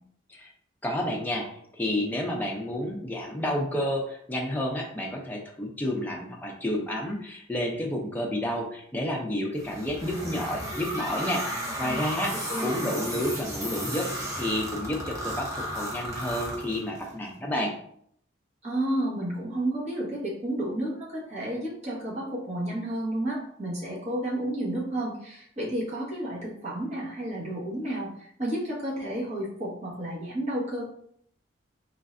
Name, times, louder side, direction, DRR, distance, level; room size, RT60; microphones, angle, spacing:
voice 1, 0.8-11.4 11.8-14.1 14.4-17.7, left 1 dB, 10° left, -1 dB, 0.6 m, -30 dB
sound 1, 9.6-17.1, right 1 dB, 15° right, 0.9 m, -34 dB
voice 2, 12.5-12.9 18.6-30.8, right 1 dB, 35° right, -6 dB, 1.3 m, -31 dB
3.8 x 3.2 x 2.5 m, 0.66 s
head